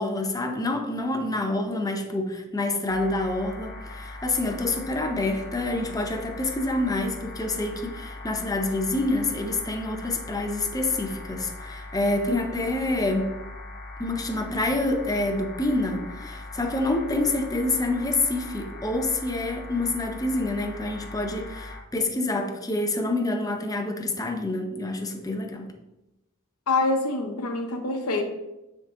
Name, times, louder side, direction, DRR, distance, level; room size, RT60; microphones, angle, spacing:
voice 1, 0.0-13.4 14.0-25.7, left 2 dB, 15° left, 4 dB, 0.7 m, -27 dB
sound 1, 2.9-21.8, left 2 dB, 40° left, 1.0 m, -40 dB
voice 2, 26.7-28.2, left 3 dB, 75° left, 5 dB, 1.0 m, -25 dB
9.2 x 3.8 x 3.7 m, 0.97 s
head